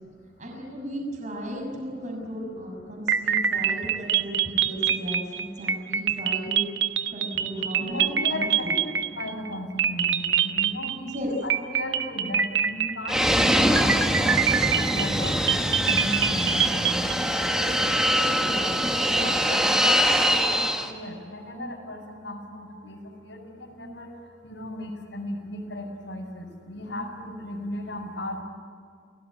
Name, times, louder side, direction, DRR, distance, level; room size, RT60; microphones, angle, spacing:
voice 1, 0.4-6.7 7.1-8.7 11.1-11.3 18.5-18.6, equal, 45° right, 1 dB, 6.3 m, -35 dB
sound 1, 3.1-9.5 9.8-11.2 11.5-13.4 13.8-17.1, right 8 dB, 70° right, 1.2 m, -25 dB
voice 2, 7.8-11.1 11.4-15.4 15.8-28.4, left 1 dB, 90° left, 0 dB, 5.5 m, -36 dB
Fixed-wing aircraft airplane, 13.1-20.9, equal, 5° right, 1.7 m, -23 dB
29.0 x 18.0 x 9.4 m, 2.3 s
head